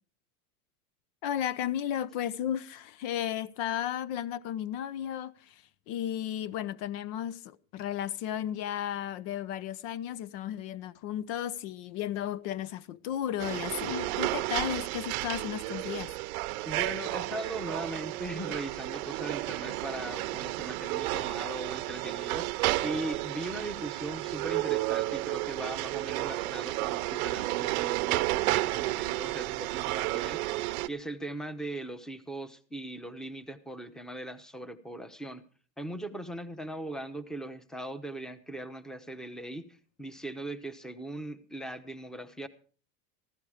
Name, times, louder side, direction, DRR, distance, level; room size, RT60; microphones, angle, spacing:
voice 1, 1.2-16.1, left 10 dB, 65° left, 0.9 m, -34 dB
sound 1, 13.4-30.9, right 19 dB, 85° right, 0.7 m, -32 dB
voice 2, 16.7-30.4 30.9-35.4 35.8-42.5, right 1 dB, ahead, 0.9 m, -39 dB
15.0 x 13.5 x 4.9 m
supercardioid pair, 135°, 41 cm